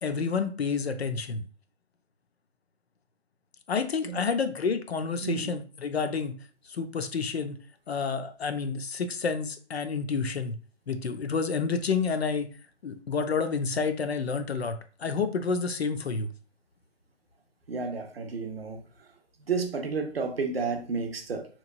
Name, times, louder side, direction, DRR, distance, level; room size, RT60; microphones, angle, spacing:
voice 1, 0.0-1.4 3.7-6.4 6.7-7.6 7.9-10.6 10.9-12.5 12.8-16.3, left 5 dB, 60° left, 0.4 m, -29 dB
voice 2, 17.7-18.8 19.5-21.5, right 4 dB, 55° right, 0.6 m, -31 dB
3.0 x 2.2 x 2.6 m
figure-of-eight pair, 155°, 36 cm